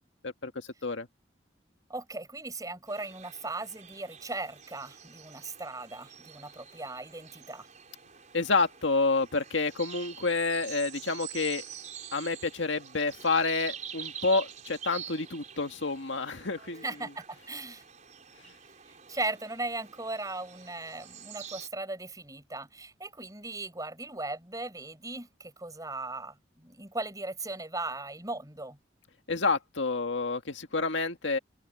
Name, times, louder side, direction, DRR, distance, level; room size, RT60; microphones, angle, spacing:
voice 1, 0.2-1.1 8.3-11.6 12.1-16.8 29.3-31.4, left 3 dB, 75° left, 1.9 m, -29 dB
voice 2, 1.9-7.7 16.8-17.8 19.1-28.8, right 2 dB, 20° right, 6.4 m, -38 dB
sound 1, 2.9-21.7, right 8 dB, 40° right, 5.3 m, -46 dB
open air
head